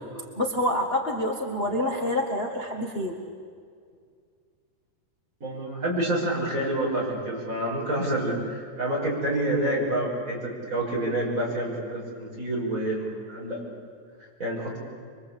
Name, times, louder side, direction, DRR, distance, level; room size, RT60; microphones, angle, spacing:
voice 1, 0.1-3.2, left 1 dB, 45° left, 0 dB, 0.7 m, -27 dB
voice 2, 5.4-13.8 14.4-14.8, right 1 dB, 20° right, -3 dB, 6.2 m, -28 dB
25.0 x 23.5 x 8.3 m, 2.1 s
omnidirectional pair, 4.1 m